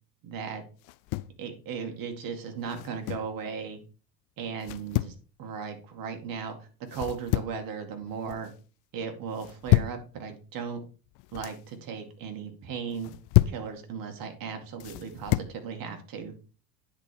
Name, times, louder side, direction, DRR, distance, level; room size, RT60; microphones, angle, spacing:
voice 1, 0.2-0.6 1.4-3.8 4.4-8.5 8.9-10.8 11.3-13.1 13.5-16.3, right 6 dB, 45° right, 4 dB, 2.3 m, -36 dB
sound 1, 0.8-1.4 2.7-3.3 4.6-5.2 6.9-7.7 8.0-8.5 9.4-10.0 11.1-11.6 12.9-13.7 14.8-15.6, left 19 dB, 40° left, 0.5 m, -28 dB
9.7 x 4.4 x 5.2 m, 0.36 s
hypercardioid pair, 80°, 48 cm